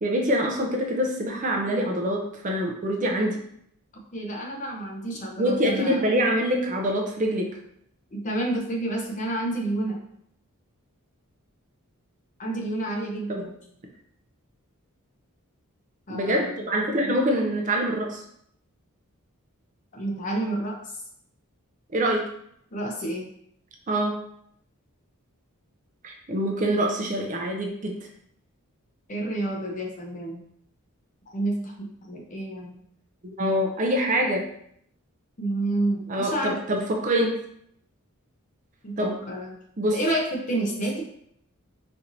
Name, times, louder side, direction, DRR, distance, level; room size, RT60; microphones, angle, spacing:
voice 1, 0.0-3.4 5.4-7.5 13.3-13.4 16.1-18.2 21.9-22.2 23.9-24.1 26.0-27.9 33.4-34.4 36.1-37.3 39.0-39.2 39.8-40.0, equal, 35° right, 1 dB, 0.5 m, -25 dB
voice 2, 3.9-6.0 8.1-10.0 12.4-13.5 16.1-16.5 17.0-17.1 19.9-21.0 22.7-23.3 29.1-30.4 31.3-32.8 35.4-36.6 38.8-39.6 39.9-41.0, right 1 dB, 35° left, 0 dB, 0.6 m, -29 dB
4.3 x 2.6 x 2.6 m, 0.70 s
head